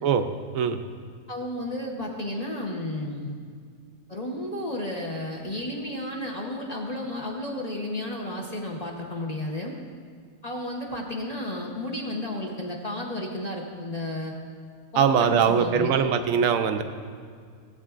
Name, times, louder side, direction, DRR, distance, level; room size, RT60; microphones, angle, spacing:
voice 1, 1.3-3.3 4.1-9.7 10.4-14.3 14.9-15.9, left 1 dB, 35° left, -1 dB, 0.8 m, -32 dB
voice 2, 15.0-16.8, right 7 dB, 75° right, 8 dB, 1.0 m, -21 dB
16.0 x 8.0 x 2.5 m, 2.1 s
omnidirectional pair, 1.5 m